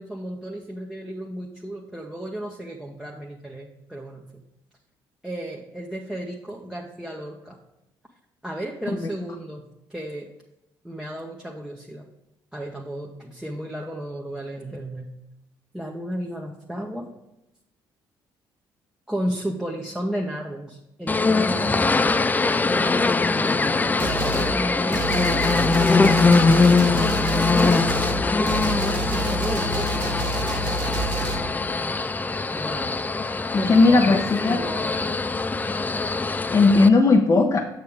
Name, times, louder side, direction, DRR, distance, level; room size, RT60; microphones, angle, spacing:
voice 1, 0.0-4.4 5.2-7.6 8.4-9.6 9.9-10.3 10.8-12.0 12.5-15.1 15.7-17.1 19.1-22.3 22.6-27.1 28.3-28.6 29.0-30.3 32.5-33.0 33.6-35.1, right 1 dB, 5° right, -2 dB, 0.9 m, -34 dB
sound 1, 21.1-36.9, left 3 dB, 20° left, 0.4 m, -22 dB
sound 2, 24.0-24.5 24.9-31.4, right 2 dB, 60° right, 1.3 m, -29 dB
voice 2, 33.5-34.6 36.5-37.6, left 3 dB, 40° left, 2 dB, 0.8 m, -17 dB
6.6 x 6.6 x 3.5 m, 0.91 s
supercardioid pair, 70°, 9 cm